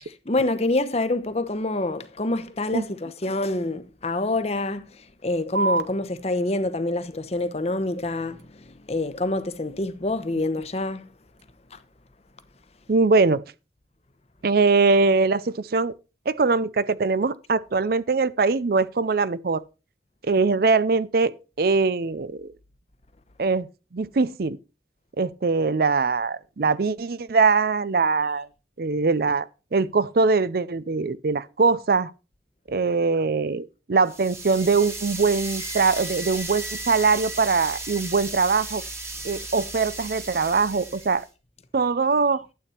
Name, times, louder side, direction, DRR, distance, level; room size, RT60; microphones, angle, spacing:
voice 1, 0.0-11.1 11.7-11.8 39.3-39.5, left 2 dB, 35° left, 1.0 m, -27 dB
sound 1, 5.5-12.5, right 3 dB, 80° right, 1.0 m, -35 dB
voice 2, 12.9-13.4 14.4-15.9 16.3-19.6 20.2-22.5 23.4-23.7 23.9-24.6 25.2-28.5 28.8-32.1 32.7-38.8 39.2-41.2 41.7-42.5, right 4 dB, 55° right, 0.5 m, -22 dB
sound 2, 34.1-41.3, right 2 dB, 15° right, 1.5 m, -35 dB
12.0 x 8.5 x 4.4 m
head